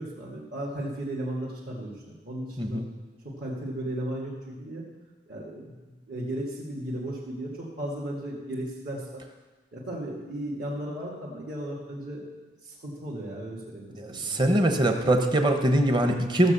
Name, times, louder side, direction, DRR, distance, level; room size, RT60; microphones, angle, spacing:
voice 1, 0.0-1.9 2.2-2.8 3.2-4.8 5.3-9.2 9.7-12.3 12.6-14.4, right 1 dB, 55° right, -7 dB, 2.4 m, -35 dB
voice 2, 14.0-16.5, right 1 dB, 25° right, 5 dB, 1.1 m, -23 dB
15.5 x 7.1 x 6.8 m, 1.2 s
head